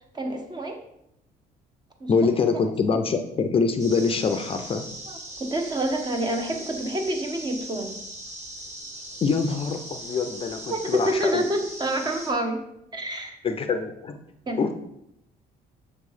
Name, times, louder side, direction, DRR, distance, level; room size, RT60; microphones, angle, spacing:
voice 1, 0.1-0.8 2.0-2.1 2.9-3.0 5.1-8.0 10.7-12.6 12.9-13.4 14.5-14.7, right 1 dB, 25° right, 4 dB, 1.0 m, -28 dB
voice 2, 2.1-4.8 9.2-11.4 13.4-14.2 14.6-14.7, left 5 dB, 35° left, 7 dB, 0.5 m, -24 dB
sound 1, 3.8-12.3, right 1 dB, 45° right, 1.6 m, -39 dB
6.3 x 3.1 x 5.4 m, 0.80 s
cardioid pair, 110°, 17 cm